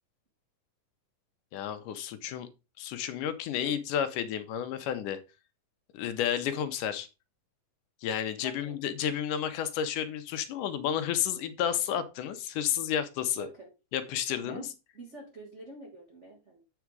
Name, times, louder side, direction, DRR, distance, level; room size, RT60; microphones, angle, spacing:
voice 1, 1.5-2.5 2.8-5.2 5.9-7.1 8.0-13.5 13.9-14.7, left 9 dB, 80° left, 2.3 m, -31 dB
voice 2, 8.4-8.8 13.3-13.7 14.4-14.7 14.9-16.6, right 3 dB, 40° right, 1.0 m, -46 dB
8.2 x 4.9 x 4.6 m
omnidirectional pair, 3.7 m